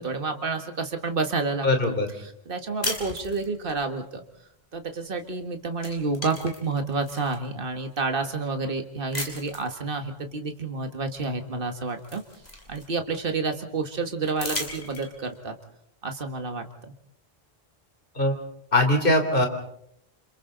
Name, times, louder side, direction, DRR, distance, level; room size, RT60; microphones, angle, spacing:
voice 1, 0.0-2.0 2.2-4.2 4.7-12.2 12.7-15.6 16.0-16.9, right 3 dB, 60° right, 5 dB, 1.8 m, -29 dB
voice 2, 1.6-2.1 18.2-18.4 18.7-19.5, left 1 dB, 60° left, 5 dB, 3.6 m, -21 dB
sound 1, 2.8-3.8 5.2-5.4 5.7-7.4 8.0-8.1 9.1-9.7 11.2-11.3 11.6-13.2 14.3-15.4, left 1 dB, 40° left, 4.6 m, -36 dB
29.5 x 27.0 x 4.0 m, 0.73 s
omnidirectional pair, 1.0 m